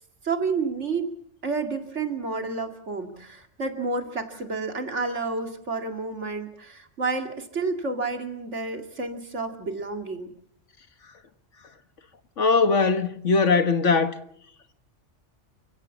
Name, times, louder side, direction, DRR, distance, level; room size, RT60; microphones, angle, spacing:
voice 1, 0.2-1.1 1.4-10.3, right 4 dB, 80° right, 2.8 m, -30 dB
voice 2, 12.4-14.1, left 4 dB, 85° left, 1.8 m, -20 dB
28.5 x 16.5 x 7.2 m
omnidirectional pair, 1.2 m